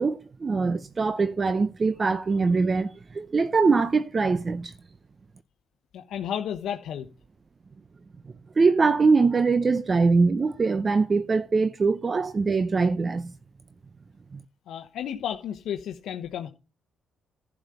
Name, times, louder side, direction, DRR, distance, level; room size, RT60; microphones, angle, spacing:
voice 1, 0.0-4.7 8.6-13.3 14.3-14.4, right 4 dB, 35° right, 0.6 m, -23 dB
voice 2, 5.9-7.1 14.7-16.5, left 9 dB, 75° left, 1.0 m, -32 dB
11.0 x 5.1 x 6.9 m
cardioid pair, 90°, 0 cm